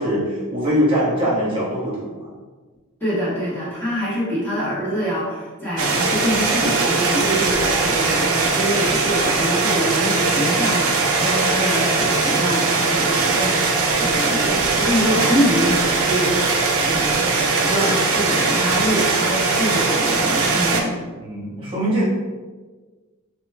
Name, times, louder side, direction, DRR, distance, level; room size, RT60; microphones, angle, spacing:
voice 1, 0.0-2.3 21.2-22.0, equal, 25° right, -7 dB, 0.9 m, -22 dB
voice 2, 3.0-20.9, equal, 10° left, -10 dB, 0.9 m, -25 dB
sound 1, 5.8-20.8, right 3 dB, 70° right, 0.5 m, -20 dB
3.1 x 2.2 x 3.3 m, 1.3 s
head